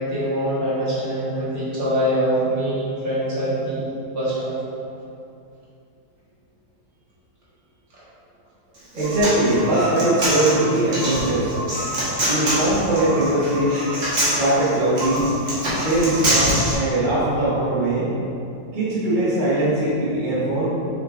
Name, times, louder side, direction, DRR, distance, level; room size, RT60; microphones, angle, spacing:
voice 1, 0.0-4.5 7.9-8.0, equal, 75° right, -9 dB, 2.2 m, -24 dB
Human voice, 8.7-16.7, right 1 dB, 55° right, 2.0 m, -24 dB
voice 2, 8.9-11.5 12.2-13.8 14.3-15.3 15.8-18.1 18.7-20.7, right 1 dB, 30° right, -9 dB, 1.5 m, -21 dB
7.0 x 6.1 x 2.7 m, 2.6 s
omnidirectional pair, 1.6 m